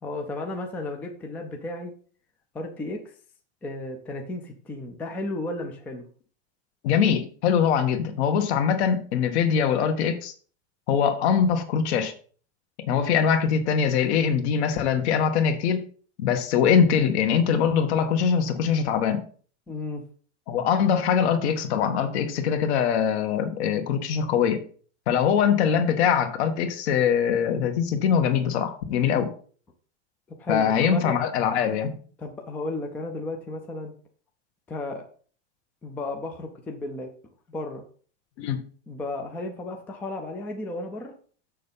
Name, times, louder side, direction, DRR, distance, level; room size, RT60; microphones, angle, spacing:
voice 1, 0.0-1.9 2.5-3.1 3.6-6.0 19.7-20.0 30.4-31.2 32.2-33.9 34.7-35.0 35.8-37.1 37.5-37.8 38.9-41.1, left 2 dB, 5° left, 3 dB, 0.3 m, -34 dB
voice 2, 6.8-10.3 10.9-12.1 12.8-15.9 16.2-19.2 20.5-24.6 25.1-29.3 30.5-31.9 38.4-38.6, left 7 dB, 65° left, 8 dB, 1.6 m, -22 dB
6.8 x 6.6 x 5.4 m, 0.43 s
supercardioid pair, 170°, 35 cm